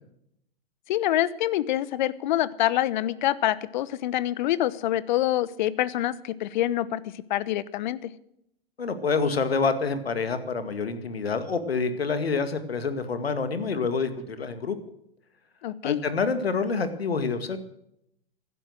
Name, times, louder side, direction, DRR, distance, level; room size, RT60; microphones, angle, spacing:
voice 1, 0.9-8.1 15.6-16.0, left 13 dB, 50° left, 19 dB, 1.0 m, -26 dB
voice 2, 8.8-14.8 15.8-17.6, left 4 dB, 80° left, 10 dB, 2.1 m, -27 dB
16.0 x 12.0 x 6.4 m, 0.77 s
figure-of-eight pair, 110°, 30 cm